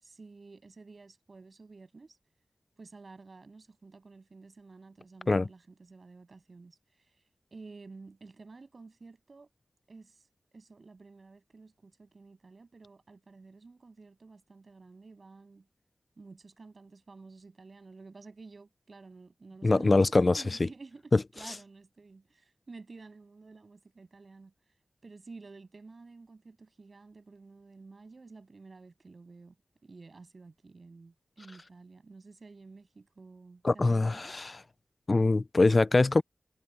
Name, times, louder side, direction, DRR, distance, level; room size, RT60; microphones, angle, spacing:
voice 1, 0.0-2.2 2.8-6.8 7.5-9.5 9.9-10.2 10.5-15.7 16.2-24.5 25.0-29.6 29.8-34.3, right 3 dB, 55° right, 7.4 m, -51 dB
voice 2, 19.6-20.4 21.1-21.2 33.6-34.6 35.1-36.2, left 3 dB, 40° left, 0.3 m, -23 dB
wide cardioid pair, 90°, 0 cm